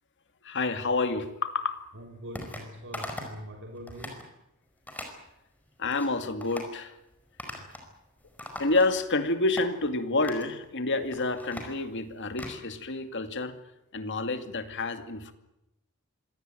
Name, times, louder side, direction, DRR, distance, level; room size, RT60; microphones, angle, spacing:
voice 1, 0.4-1.8 5.8-7.0 8.6-13.6 13.9-15.3, left 3 dB, 55° left, 8 dB, 2.3 m, -29 dB
voice 2, 1.9-4.3 7.5-7.8, equal, 60° right, 1 dB, 3.4 m, -43 dB
sound 1, 2.3-2.6 2.9-3.4 3.8-4.2 4.9-5.2 5.7-6.1 6.4-6.7 7.4-7.9 8.2-9.1 9.6-9.7 10.2-10.5 11.0-12.6, left 1 dB, 10° left, 5.1 m, -40 dB
26.0 x 17.5 x 9.2 m, 0.91 s
head